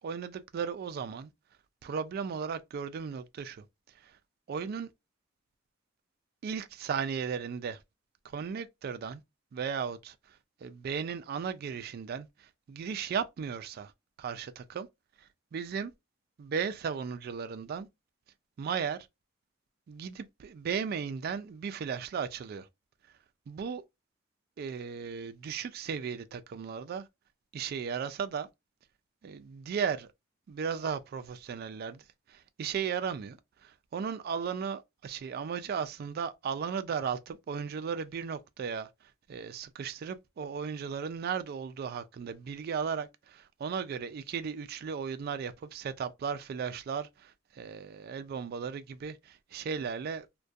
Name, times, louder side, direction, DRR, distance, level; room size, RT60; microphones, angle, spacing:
voice 1, 0.0-1.3 1.8-3.6 4.0-4.2 4.5-4.9 6.4-7.8 8.2-9.2 9.5-13.9 14.2-14.9 15.2-15.9 16.4-17.9 18.6-19.1 19.9-22.7 23.5-23.8 24.6-27.1 27.5-28.5 29.2-30.1 30.5-38.9 39.3-50.3, right 6 dB, 55° right, 0.3 m, -36 dB
2.3 x 2.2 x 2.5 m
head